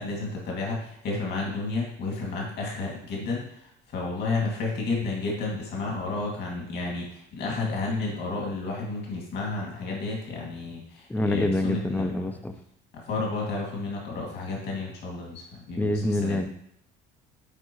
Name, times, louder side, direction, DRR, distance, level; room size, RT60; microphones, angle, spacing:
voice 1, 0.0-3.4 3.9-12.1 13.0-16.4, left 3 dB, 55° left, -2 dB, 2.2 m, -31 dB
voice 2, 11.1-12.5 15.8-16.5, left 2 dB, 10° left, 9 dB, 0.5 m, -26 dB
8.2 x 4.6 x 3.0 m, 0.71 s
cardioid pair, 105°, 20 cm